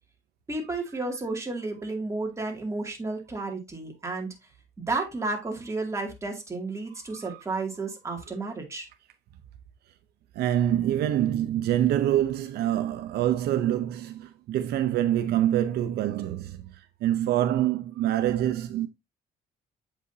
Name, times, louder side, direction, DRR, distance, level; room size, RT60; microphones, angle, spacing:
voice 1, 0.5-4.3 4.8-8.9, right 3 dB, 15° right, 2.3 m, -32 dB
voice 2, 10.3-18.9, right 12 dB, 70° right, 0.6 m, -26 dB
7.9 x 5.1 x 2.7 m
cardioid pair, 110°, 17 cm